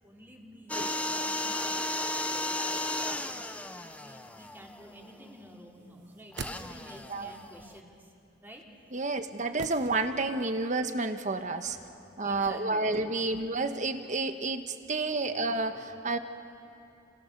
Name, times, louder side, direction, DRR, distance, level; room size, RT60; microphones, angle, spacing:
voice 1, 0.0-1.9 2.2-8.1 8.4-8.6 11.6-13.3 14.0-14.2 14.5-14.6 15.3-15.8, equal, 10° right, -1 dB, 3.4 m, -50 dB
sound 1, 0.7-5.2 6.3-7.7, left 1 dB, 10° left, 0.9 m, -34 dB
voice 2, 0.8-1.1 7.1-7.3 8.9-11.8 12.2-16.2, right 3 dB, 40° right, 8 dB, 1.4 m, -30 dB
sound 2, 6.0-7.2 9.6-10.5 10.8-10.9, right 3 dB, 65° right, 1.2 m, -43 dB
29.5 x 29.0 x 6.8 m, 2.7 s
head